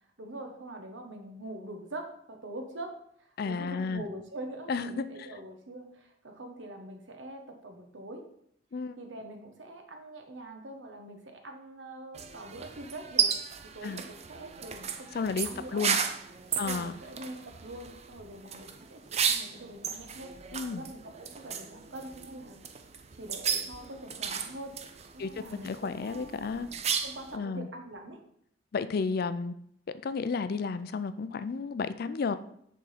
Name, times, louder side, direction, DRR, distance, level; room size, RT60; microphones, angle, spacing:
voice 1, 0.2-8.3 9.0-13.3 13.7-16.0 16.5-20.3 20.7-22.7 23.1-24.8 25.1-26.6 27.0-28.2, right 1 dB, 80° right, 5 dB, 1.1 m, -44 dB
voice 2, 3.4-4.0 4.7-5.3 8.7-9.0 13.8-14.0 15.1-16.0 16.6-16.9 20.5-20.8 25.2-25.3 25.6-26.7 27.3-27.7 28.7-29.5 30.0-32.4, left 4 dB, 55° left, 12 dB, 0.4 m, -32 dB
sound 1, 12.1-27.4, right 7 dB, 35° right, 0.5 m, -34 dB
6.7 x 3.7 x 5.7 m, 0.70 s
head